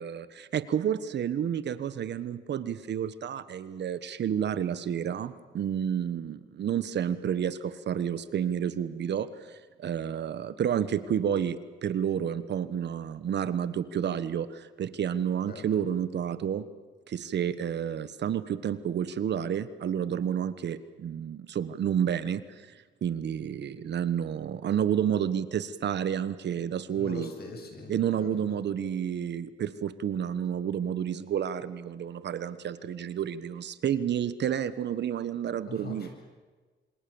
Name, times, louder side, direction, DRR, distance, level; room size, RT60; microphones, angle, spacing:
voice 1, 0.0-16.7 17.1-27.3 27.9-36.1, right 9 dB, 60° right, 14 dB, 1.4 m, -30 dB
voice 2, 26.9-27.9 28.2-28.3 35.7-36.1, left 3 dB, 50° left, 4 dB, 7.8 m, -41 dB
27.5 x 25.0 x 7.2 m, 1.4 s
cardioid pair, 90°, 20 cm